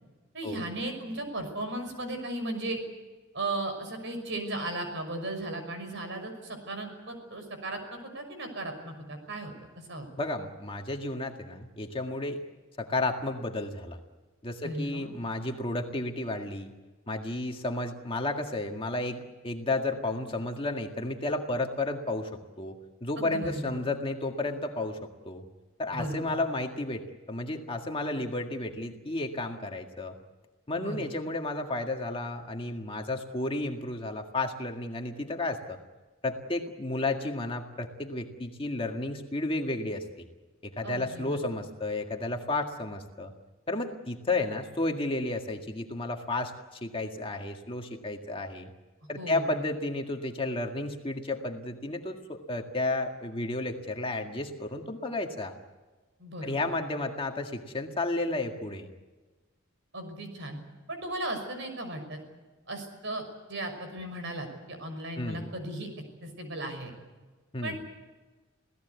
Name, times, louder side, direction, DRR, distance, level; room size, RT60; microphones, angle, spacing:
voice 1, 0.3-2.8 3.3-9.5 9.9-10.1 14.6-15.1 23.2-23.8 25.9-26.4 30.7-31.1 40.8-41.5 49.2-49.5 56.2-56.6 59.9-60.6 60.9-62.2 62.7-63.2 63.5-65.9 66.2-66.9 67.6-67.8, right 1 dB, 60° right, 6 dB, 6.0 m, -36 dB
voice 2, 10.2-12.4 12.8-14.0 14.4-16.7 17.1-22.3 22.6-25.0 25.3-25.4 25.8-30.2 30.7-35.8 36.2-40.3 40.6-43.3 43.7-48.7 49.1-55.5 56.4-58.9 65.2-65.5 67.5-67.8, left 2 dB, 25° left, 3 dB, 1.9 m, -32 dB
27.5 x 17.0 x 8.2 m, 1.2 s
head